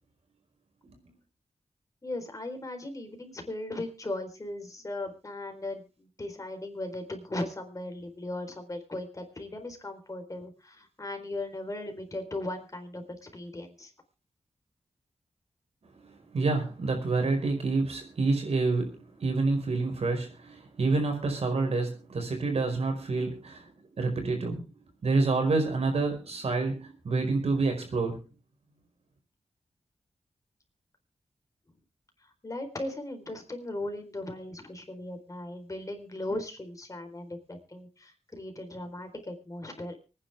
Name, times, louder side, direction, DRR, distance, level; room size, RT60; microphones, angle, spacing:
voice 1, 0.8-1.1 16.0-24.6 25.0-28.2, right 3 dB, 75° right, 4 dB, 5.0 m, -28 dB
voice 2, 2.0-13.9 32.2-40.0, left 1 dB, 30° left, 5 dB, 4.2 m, -38 dB
24.5 x 10.0 x 3.5 m, 0.32 s
wide cardioid pair, 85°, 11 cm